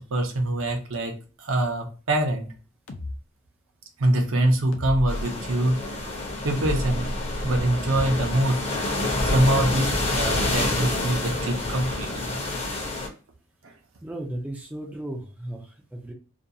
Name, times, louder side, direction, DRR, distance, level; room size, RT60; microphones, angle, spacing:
voice 1, 0.1-1.1 1.4-2.5 4.0-5.8 6.4-7.2 7.4-8.6 9.2-12.1, right 1 dB, 65° right, 3 dB, 0.6 m, -24 dB
sound 1, 2.9-3.1 4.7-5.3 6.6-7.7, left 1 dB, 65° left, 0.5 m, -32 dB
sound 2, 5.1-13.1, left 2 dB, 30° left, 0.7 m, -28 dB
voice 2, 14.0-16.1, right 1 dB, 5° right, 0 dB, 0.3 m, -35 dB
2.5 x 2.3 x 2.6 m, 0.38 s
head